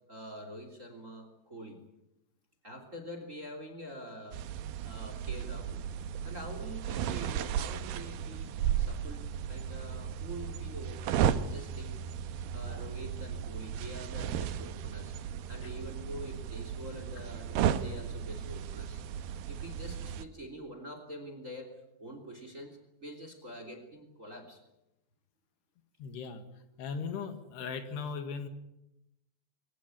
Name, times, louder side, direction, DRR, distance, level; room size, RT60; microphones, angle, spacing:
voice 1, 0.1-1.8 2.6-4.4 4.8-5.8 6.2-11.9 12.5-15.1 15.5-19.0 19.5-21.7 22.0-24.6, equal, 20° right, 7 dB, 2.9 m, -46 dB
sound 1, 4.3-20.2, right 9 dB, 70° right, 2.4 m, -35 dB
voice 2, 26.0-26.4 26.8-28.5, left 5 dB, 75° left, 8 dB, 3.9 m, -38 dB
23.5 x 18.0 x 9.7 m, 0.89 s
omnidirectional pair, 5.0 m